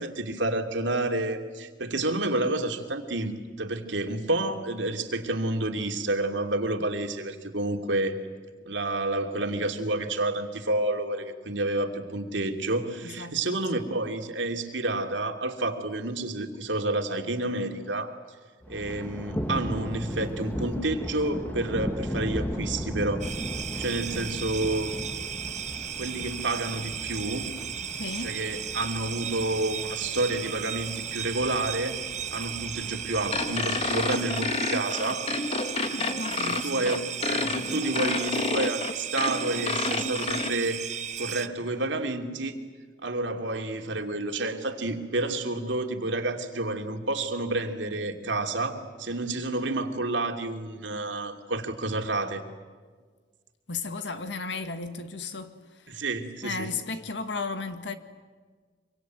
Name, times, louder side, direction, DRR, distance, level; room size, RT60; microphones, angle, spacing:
voice 1, 0.0-3.3 3.6-8.1 8.7-18.1 18.7-23.3 23.8-25.0 26.0-27.5 28.2-32.0 32.3-35.3 36.4-42.5 43.0-52.4 55.9-56.7, right 2 dB, 85° right, 2.8 m, -29 dB
voice 2, 13.0-13.6 27.9-28.3 35.9-37.0 53.7-55.8 56.4-57.9, left 4 dB, 75° left, 1.9 m, -35 dB
Thunder, 18.6-34.6, equal, 10° left, 1.5 m, -37 dB
sound 1, 23.2-41.5, right 9 dB, 40° right, 1.0 m, -35 dB
sound 2, 33.3-40.5, left 3 dB, 35° left, 1.3 m, -29 dB
25.5 x 24.5 x 9.3 m
head